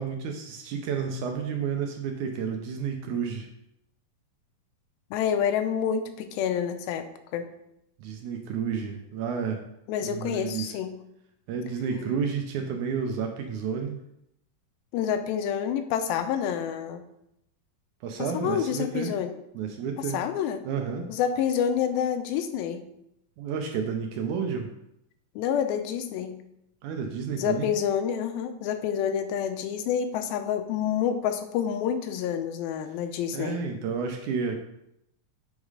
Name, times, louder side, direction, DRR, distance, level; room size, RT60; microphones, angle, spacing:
voice 1, 0.0-3.5 8.0-9.6 10.0-10.8 11.5-14.0 18.0-19.2 19.5-20.2 20.6-21.1 23.4-24.7 26.8-27.7 33.3-34.6, right 6 dB, 80° right, 4 dB, 1.8 m, -31 dB
voice 2, 5.1-7.1 7.3-7.5 9.9-11.0 14.9-17.0 18.2-19.3 20.1-20.6 21.1-22.8 25.4-26.4 27.4-33.6, left 8 dB, 90° left, 8 dB, 2.5 m, -28 dB
8.1 x 3.7 x 4.8 m, 0.81 s
omnidirectional pair, 4.1 m